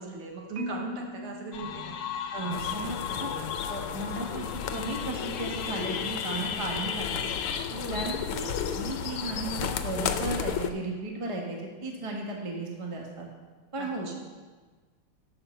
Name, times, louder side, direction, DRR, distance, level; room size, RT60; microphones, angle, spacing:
voice 1, 0.0-2.0 7.7-8.1 13.8-14.2, right 4 dB, 75° right, 0 dB, 2.4 m, -39 dB
Marimba xylophone, 0.6-2.7, left 1 dB, 60° right, 0.7 m, -40 dB
sound 1, 1.5-7.6, left 7 dB, 65° left, 1.3 m, -36 dB
voice 2, 2.3-3.3 3.7-4.5 4.7-7.3 7.9-13.3 13.7-14.1, right 2 dB, 20° right, 0 dB, 1.1 m, -35 dB
sound 2, 2.5-10.7, left 8 dB, 85° left, 1.6 m, -34 dB
11.5 x 5.8 x 6.9 m, 1.4 s
omnidirectional pair, 2.4 m